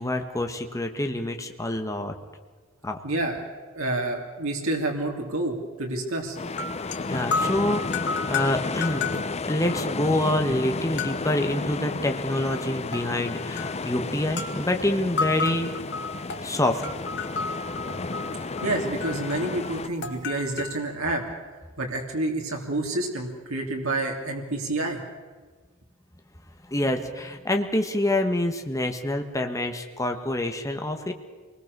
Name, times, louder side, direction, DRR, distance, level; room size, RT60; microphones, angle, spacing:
voice 1, 0.0-2.1 2.8-3.0 7.1-9.1 9.5-15.7 16.4-16.8 26.7-31.1, left 1 dB, 15° left, 4 dB, 1.5 m, -26 dB
voice 2, 3.0-3.5 3.7-6.4 18.6-21.2 21.8-25.0, right 2 dB, 85° right, 1 dB, 3.2 m, -28 dB
sound 1, 6.4-9.8 10.1-10.2 11.0-11.4 12.5-13.9 14.3-14.6 15.2-20.8, left 4 dB, 55° left, 2.0 m, -32 dB
sound 2, 6.4-19.9, left 3 dB, 30° left, 0.7 m, -32 dB
27.0 x 20.5 x 6.8 m, 1.4 s
head